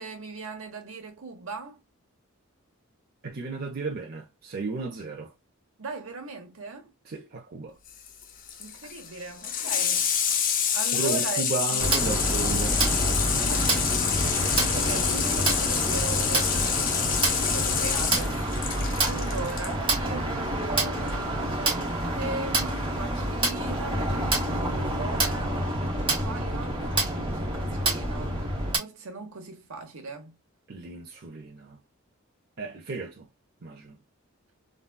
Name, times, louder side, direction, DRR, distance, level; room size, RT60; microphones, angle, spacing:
voice 1, 0.0-1.8 5.8-6.9 8.6-10.1 10.7-11.5 11.7-11.9 13.5-13.9 14.2-18.5 19.0-21.9 22.1-25.6 26.2-30.4, right 4 dB, 80° right, 1.0 m, -39 dB
voice 2, 3.2-5.3 7.1-7.7 10.9-12.8 30.7-31.8 32.6-33.3 33.6-34.0, right 3 dB, 50° right, 0.6 m, -34 dB
Water tap faucet / Sink (filling or washing), 7.9-19.7 21.0-21.1, left 8 dB, 40° left, 0.5 m, -27 dB
sound 1, 11.8-28.8, right 1 dB, 25° right, 1.0 m, -27 dB
3.9 x 2.3 x 2.2 m
head